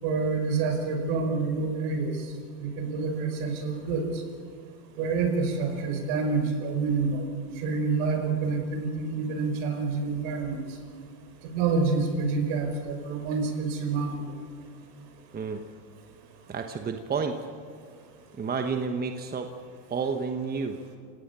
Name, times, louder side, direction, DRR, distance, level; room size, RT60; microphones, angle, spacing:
voice 1, 0.0-2.1 2.6-4.0 5.0-7.2 7.6-10.6 11.4-14.2, right 4 dB, 65° right, 5 dB, 5.1 m, -27 dB
voice 2, 16.5-17.4 18.4-19.5 19.9-20.8, right 5 dB, 20° right, 5 dB, 1.2 m, -30 dB
28.5 x 17.5 x 6.9 m, 2.1 s
supercardioid pair, 130°, 48 cm